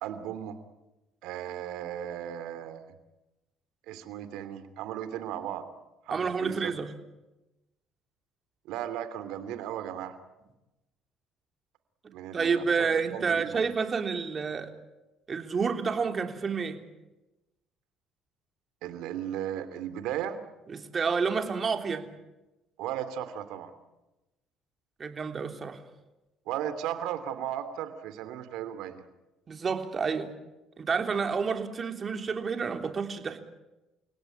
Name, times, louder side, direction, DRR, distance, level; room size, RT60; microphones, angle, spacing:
voice 1, 0.0-0.6 1.2-2.9 3.9-5.7 6.1-6.7 8.7-10.1 12.1-13.6 18.8-20.4 22.8-23.7 26.5-29.0, right 10 dB, 80° right, 11 dB, 2.8 m, -36 dB
voice 2, 6.1-6.9 12.3-14.7 15.3-16.8 20.7-22.1 25.0-25.8 29.5-30.3 30.8-33.4, right 5 dB, 35° right, 6 dB, 3.4 m, -29 dB
30.0 x 17.5 x 9.9 m, 1.0 s
supercardioid pair, 80°, 0 cm